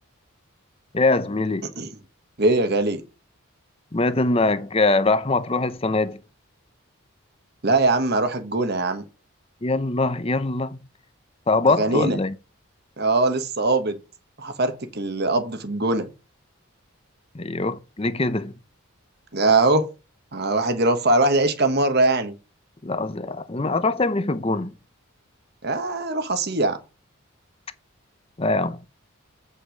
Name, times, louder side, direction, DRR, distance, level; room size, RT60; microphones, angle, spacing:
voice 1, 0.9-1.7 3.9-6.2 9.6-10.8 11.5-12.4 17.3-18.5 22.8-24.7 28.4-28.8, left 3 dB, 25° left, 0.7 m, -23 dB
voice 2, 2.4-3.0 7.6-9.0 11.8-12.2 13.0-14.0 14.4-16.1 19.3-19.9 20.3-22.3 25.6-26.8, right 2 dB, 50° right, 1.3 m, -21 dB
8.3 x 5.6 x 5.1 m
head